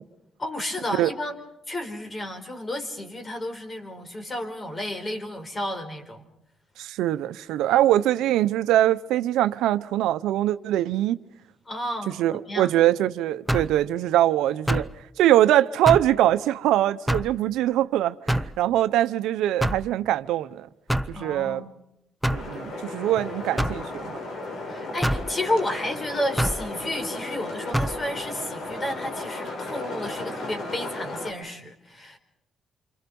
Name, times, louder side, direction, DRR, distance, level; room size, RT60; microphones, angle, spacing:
voice 1, 0.4-1.3 1.7-6.2 11.7-12.7 21.1-21.7 24.7-32.2, left 1 dB, 25° left, 4.7 m, -32 dB
voice 2, 6.8-11.2 12.2-14.9 15.2-20.7 21.1-21.6 22.3-24.1, right 13 dB, 90° right, 0.8 m, -22 dB
sound 1, 13.5-13.8 14.7-15.0 15.9-16.1 17.1-17.4 18.3-18.6 19.6-19.9 20.9-21.2 22.2-22.5 23.6-23.8 25.0-25.3 26.4-26.6 27.7-28.0, right 1 dB, ahead, 0.9 m, -25 dB
sound 2, 22.3-31.3, left 2 dB, 65° left, 6.6 m, -35 dB
29.0 x 25.0 x 5.4 m
cardioid pair, 90°, 0 cm